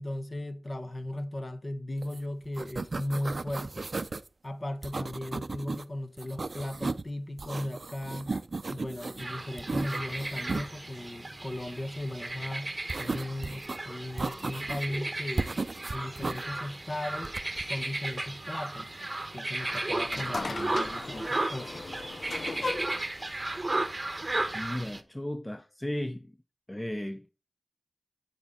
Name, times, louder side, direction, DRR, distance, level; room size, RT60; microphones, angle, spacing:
voice 1, 0.0-3.9 4.4-8.4 8.7-12.7 13.0-15.6 15.9-17.3 17.6-18.9 19.3-21.8, left 1 dB, 35° left, 1.2 m, -37 dB
sound 1, 2.0-2.2 2.4-4.3 4.8-5.8 6.2-7.1 7.4-9.2 9.6-10.7 12.9-13.8 14.2-15.0 15.4-16.4 17.2-17.7, right 3 dB, 55° right, 0.5 m, -35 dB
sound 2, 9.2-25.0, right 2 dB, 30° right, 1.0 m, -35 dB
sound 3, 19.6-24.9, left 3 dB, 65° left, 0.6 m, -39 dB
voice 2, 24.5-26.3 26.7-27.3, left 1 dB, 15° left, 0.5 m, -35 dB
8.6 x 7.1 x 3.7 m
cardioid pair, 50°, 0 cm